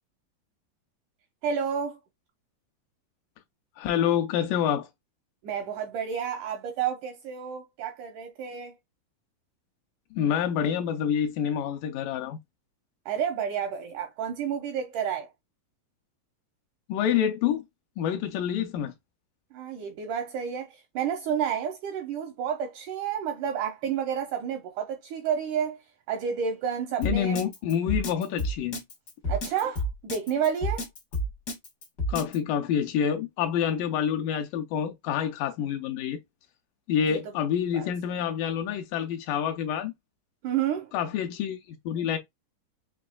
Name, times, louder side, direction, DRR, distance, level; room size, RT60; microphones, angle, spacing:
voice 1, 1.4-2.0 5.4-8.7 13.1-15.3 19.5-25.8 26.1-27.4 29.3-30.9 37.1-37.2 37.7-37.9 40.4-40.9, right 8 dB, 85° right, 1.8 m, -30 dB
voice 2, 3.8-4.9 10.1-12.4 16.9-17.6 18.0-18.9 27.0-28.8 32.1-36.2 36.9-39.9 40.9-42.2, left 8 dB, 80° left, 2.0 m, -27 dB
Drum kit, 27.0-32.4, equal, 60° left, 1.0 m, -30 dB
6.2 x 3.1 x 2.3 m
omnidirectional pair, 4.1 m